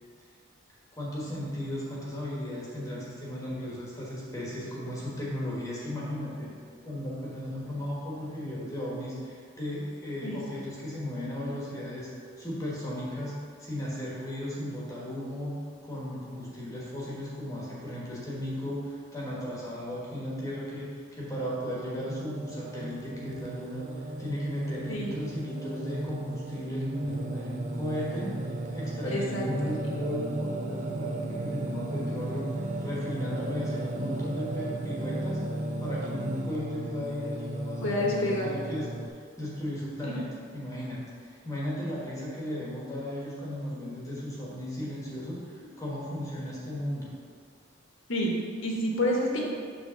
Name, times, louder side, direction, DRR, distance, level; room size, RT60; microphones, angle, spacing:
voice 1, 0.9-6.5 6.8-12.1 12.4-13.3 13.6-32.5 32.8-38.9 39.4-40.3 40.5-47.1, left 1 dB, 15° left, -6 dB, 1.4 m, -35 dB
Singing, 22.0-39.1, right 2 dB, 40° right, 0.5 m, -35 dB
voice 2, 29.0-29.4 37.8-38.5 40.0-40.1 48.1-49.4, left 1 dB, 80° left, -2 dB, 1.4 m, -28 dB
7.2 x 3.4 x 6.3 m, 2.1 s
head